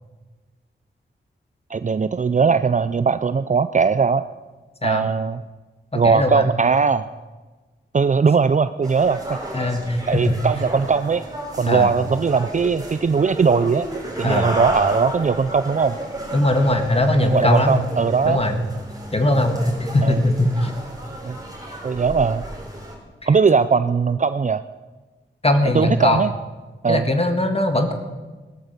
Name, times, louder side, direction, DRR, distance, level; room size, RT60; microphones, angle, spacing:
voice 1, 1.7-4.2 4.8-5.4 5.9-7.0 7.9-9.7 10.1-11.2 11.6-13.9 14.2-16.0 17.2-18.4 20.0-20.2 21.2-21.4 21.8-22.4 23.3-24.6 25.7-26.3 26.8-27.1, right 5 dB, 40° right, 13 dB, 0.5 m, -19 dB
voice 2, 5.9-6.5 9.5-10.3 11.7-11.9 14.2-14.5 16.3-17.8 18.3-18.6 19.1-20.7 23.2-23.3 25.4-26.2 26.9-27.9, left 1 dB, 30° left, 6 dB, 1.6 m, -20 dB
sound 1, 8.8-23.0, right 1 dB, 20° right, 4.2 m, -32 dB
17.0 x 12.5 x 6.7 m, 1.3 s
wide cardioid pair, 80°, 20 cm